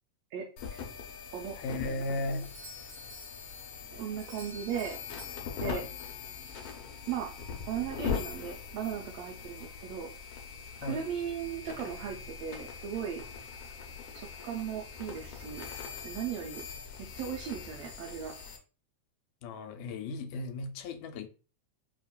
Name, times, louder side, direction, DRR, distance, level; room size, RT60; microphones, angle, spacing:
voice 1, 0.3-0.8 1.3-1.6 1.8-2.0 3.9-5.0 5.6-5.8 7.1-7.3 7.7-10.1 10.8-13.2 14.1-15.7 16.0-16.6 17.0-18.3, right 8 dB, 80° right, 1.6 m, -37 dB
sound 1, 0.6-18.6, left 6 dB, 70° left, 1.6 m, -42 dB
voice 2, 1.6-2.6 5.6-5.9 10.8-11.1 19.4-21.3, left 2 dB, 85° left, 2.0 m, -36 dB
Doorbell, 2.3-6.8, left 1 dB, 55° right, 2.3 m, -51 dB
5.2 x 2.9 x 2.3 m
omnidirectional pair, 3.5 m